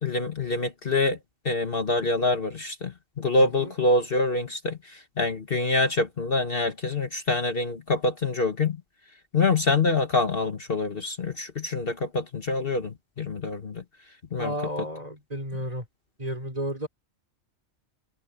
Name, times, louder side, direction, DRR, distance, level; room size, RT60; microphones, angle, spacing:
voice 1, 0.0-1.2 1.4-8.8 9.3-13.8 14.3-14.5, left 3 dB, 45° left, 1.5 m, -26 dB
voice 2, 3.4-3.7 14.4-15.9 16.2-16.9, equal, 30° right, 3.8 m, -32 dB
omnidirectional pair, 1.3 m